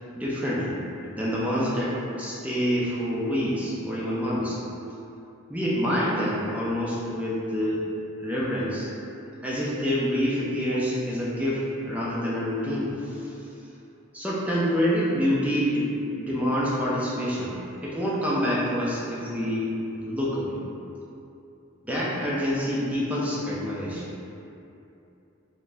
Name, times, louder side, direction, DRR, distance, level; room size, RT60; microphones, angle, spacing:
voice 1, 0.1-0.8 1.1-4.6 5.5-7.9 8.2-8.9 9.4-13.3 14.1-20.6 21.8-24.0, equal, 5° right, -7 dB, 0.3 m, -27 dB
3.4 x 2.1 x 2.5 m, 2.8 s
head